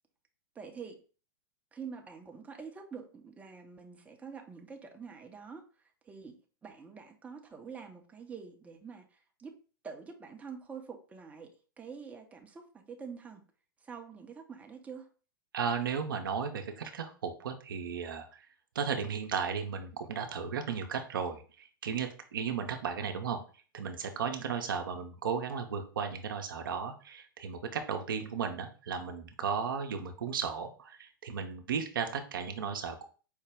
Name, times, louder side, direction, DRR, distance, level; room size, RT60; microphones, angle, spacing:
voice 1, 0.5-1.0 1.7-9.6 9.8-13.5 13.8-15.1, right 6 dB, 10° right, 0.6 m, -46 dB
voice 2, 15.5-18.5 18.7-23.4 23.7-33.1, right 6 dB, 70° right, 0.6 m, -35 dB
4.8 x 2.1 x 3.4 m
figure-of-eight pair, 100°, 12 cm